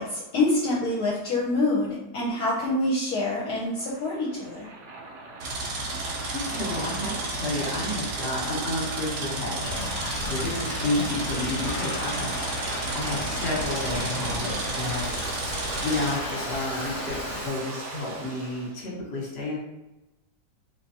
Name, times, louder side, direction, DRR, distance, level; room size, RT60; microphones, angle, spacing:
voice 1, 0.0-4.7, left 2 dB, 65° left, -4 dB, 1.1 m, -26 dB
Waves surf, 2.9-18.7, right 3 dB, 70° right, 1.2 m, -38 dB
sound 1, 5.4-16.1, right 2 dB, 90° right, 1.4 m, -33 dB
voice 2, 6.3-19.6, left 2 dB, 40° left, -3 dB, 1.2 m, -31 dB
Thunder / Rain, 9.6-17.5, left 3 dB, 85° left, 0.6 m, -35 dB
3.2 x 3.1 x 2.8 m, 0.98 s
omnidirectional pair, 1.8 m